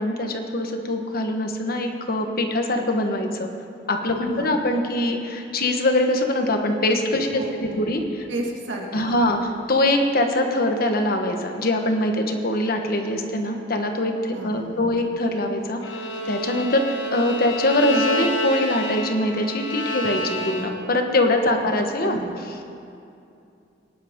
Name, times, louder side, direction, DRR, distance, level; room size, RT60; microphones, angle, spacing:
voice 1, 0.0-3.5 3.9-7.4 7.7-8.3 8.9-9.4 9.7-16.8 17.1-22.2 22.5-22.6, left 1 dB, 55° left, 4 dB, 1.3 m, -23 dB
voice 2, 4.2-4.7 7.2-8.0 8.3-9.3 14.3-15.0 21.6-21.7 22.2-22.4, right 1 dB, 80° right, -1 dB, 2.2 m, -34 dB
Bowed string instrument, 15.8-21.0, equal, 80° left, 1.1 m, -29 dB
21.5 x 11.0 x 3.7 m, 2.6 s
head